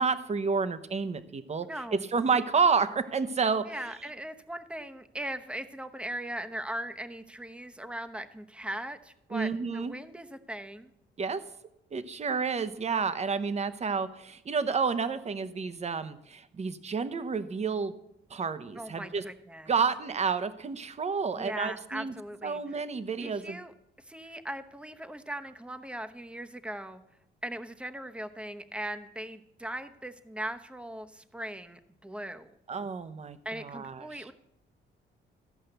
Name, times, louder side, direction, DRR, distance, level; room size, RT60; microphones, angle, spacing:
voice 1, 0.0-3.6 9.3-9.9 11.2-11.4 11.9-17.9 18.3-19.2 19.7-22.1 22.4-23.6 32.7-34.2, right 5 dB, 35° right, 12 dB, 0.9 m, -30 dB
voice 2, 1.7-2.1 3.7-10.9 18.8-19.7 21.3-22.6 23.2-23.7 24.0-27.0 27.4-32.5 33.4-34.3, right 1 dB, 5° right, 9 dB, 0.9 m, -39 dB
14.5 x 5.5 x 7.9 m, 0.82 s
cardioid pair, 90°, 20 cm